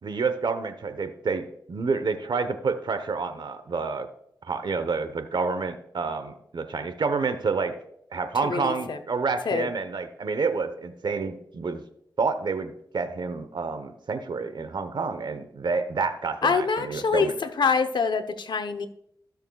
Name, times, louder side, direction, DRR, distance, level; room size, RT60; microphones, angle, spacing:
voice 1, 0.0-4.1 4.5-7.7 8.1-11.8 12.2-17.3, right 4 dB, 70° right, 9 dB, 1.0 m, -29 dB
voice 2, 8.4-9.0 9.5-9.7 16.4-18.9, left 5 dB, 70° left, 9 dB, 0.8 m, -25 dB
16.0 x 6.6 x 2.3 m, 0.72 s
cardioid pair, 50°, 8 cm